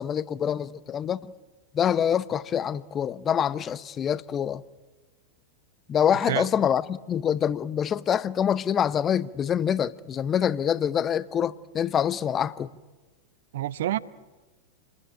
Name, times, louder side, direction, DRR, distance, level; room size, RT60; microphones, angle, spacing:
voice 1, 0.0-1.3 1.7-4.6 5.9-12.7, left 9 dB, 25° left, 0.8 m, -25 dB
voice 2, 6.1-6.5 13.5-14.0, right 13 dB, 55° right, 0.8 m, -28 dB
28.5 x 21.0 x 9.0 m
figure-of-eight pair, 90°, 0 cm